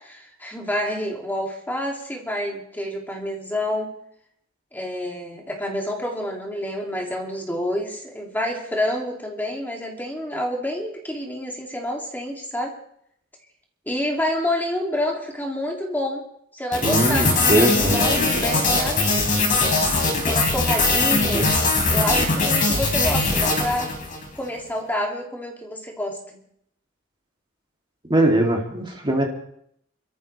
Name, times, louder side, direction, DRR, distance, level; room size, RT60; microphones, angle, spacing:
voice 1, 0.0-3.9 4.7-12.7 13.9-16.3 16.5-19.1 20.2-21.6 21.9-23.9 24.3-26.4, left 1 dB, 10° left, -1 dB, 2.6 m, -28 dB
sound 1, 16.7-24.3, left 3 dB, 40° left, 4.5 m, -21 dB
voice 2, 16.8-18.0 21.3-21.5 28.1-29.2, right 1 dB, 25° right, 0 dB, 2.6 m, -20 dB
29.5 x 14.0 x 3.3 m, 0.69 s
head